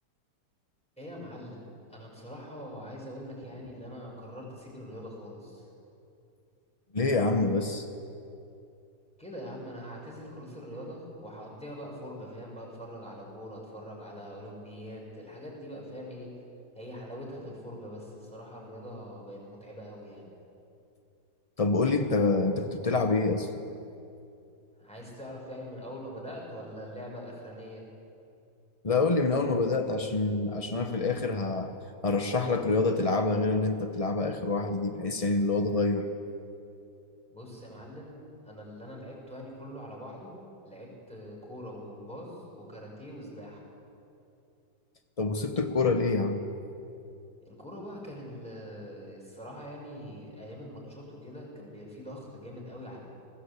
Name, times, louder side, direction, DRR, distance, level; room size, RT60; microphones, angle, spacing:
voice 1, 1.0-5.7 9.2-16.3 16.7-20.3 24.8-27.8 37.3-40.3 40.6-43.6 47.4-53.0, equal, 5° left, -3 dB, 5.7 m, -43 dB
voice 2, 6.9-7.9 21.6-23.5 28.8-31.7 32.0-36.1 45.2-46.4, left 3 dB, 60° left, 6 dB, 0.3 m, -26 dB
20.0 x 16.0 x 8.3 m, 2.6 s
omnidirectional pair, 2.1 m